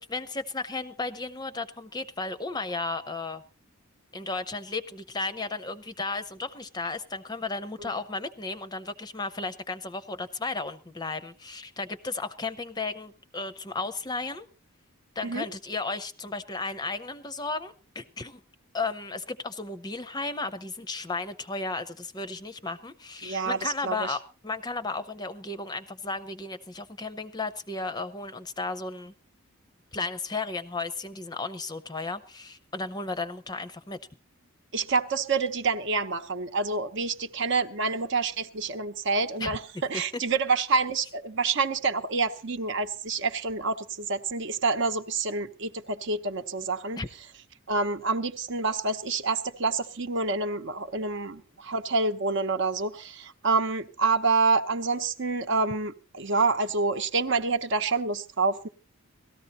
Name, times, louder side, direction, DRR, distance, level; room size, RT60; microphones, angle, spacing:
voice 1, 0.0-3.4 4.1-14.5 15.2-18.4 18.7-29.1 29.9-34.0 39.4-39.5 40.1-40.2 47.0-47.1, left 3 dB, 20° left, 0.6 m, -34 dB
voice 2, 23.2-24.1 34.7-47.0 47.7-58.7, right 4 dB, 55° right, 0.9 m, -27 dB
18.0 x 14.0 x 4.1 m
head